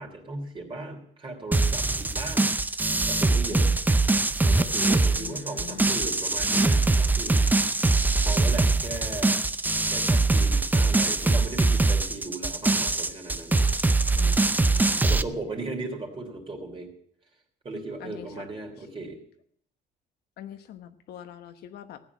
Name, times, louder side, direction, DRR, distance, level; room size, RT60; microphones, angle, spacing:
voice 1, 0.0-3.7 4.4-7.4 8.2-9.4 9.9-13.7 15.0-16.9 17.6-19.2, right 2 dB, 30° right, 2 dB, 3.2 m, -37 dB
sound 1, 1.5-15.2, right 3 dB, 10° right, 0.5 m, -23 dB
voice 2, 3.5-4.1 5.1-6.1 14.1-15.2 18.0-18.5 18.8-18.9 20.4-22.0, left 10 dB, 70° left, 8 dB, 1.2 m, -44 dB
15.0 x 9.1 x 6.1 m, 0.66 s
cardioid pair, 110°, 17 cm